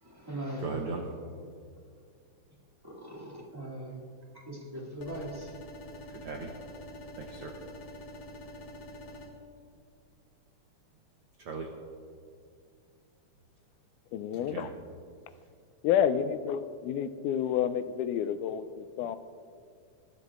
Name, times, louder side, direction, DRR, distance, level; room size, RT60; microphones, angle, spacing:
voice 1, 0.0-0.7 2.8-4.0 4.3-5.5, right 1 dB, 10° right, -6 dB, 1.6 m, -40 dB
voice 2, 0.6-1.1 6.1-6.5 7.2-7.5 11.4-11.7 14.5-14.7, right 4 dB, 85° right, 2 dB, 1.2 m, -37 dB
sound 1, 5.0-9.3, left 1 dB, 60° left, 2.5 m, -46 dB
voice 3, 14.1-14.7 15.8-19.2, left 9 dB, 85° left, 12 dB, 2.0 m, -29 dB
19.5 x 13.5 x 2.4 m, 2.3 s
omnidirectional pair, 3.6 m